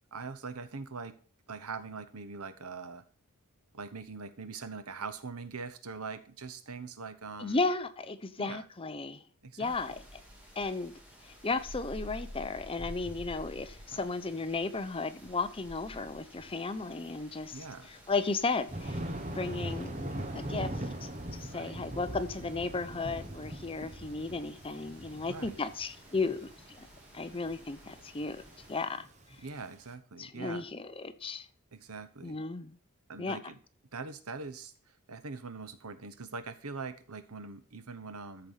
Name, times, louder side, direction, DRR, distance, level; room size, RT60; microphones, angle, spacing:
voice 1, 0.1-1.2 1.5-3.0 3.7-7.6 8.4-8.6 9.4-9.7 13.9-14.0 17.5-17.9 21.5-21.8 25.3-25.6 29.4-30.7 31.7-32.4 33.1-33.6 33.9-34.7 35.1-38.5, right 4 dB, 85° right, 12 dB, 1.1 m, -42 dB
voice 2, 7.4-9.2 9.6-10.0 10.6-10.9 11.2-19.0 19.4-19.9 20.3-26.5 26.8-26.9 27.1-28.4 28.7-29.0 30.2-31.5 32.2-32.7 33.2-33.4, left 3 dB, 25° left, 11 dB, 0.7 m, -34 dB
sound 1, 9.6-28.8, equal, 5° right, 2.5 m, -51 dB
Thunder, 18.7-29.8, right 1 dB, 35° right, 1.3 m, -41 dB
13.5 x 4.8 x 5.6 m, 0.41 s
head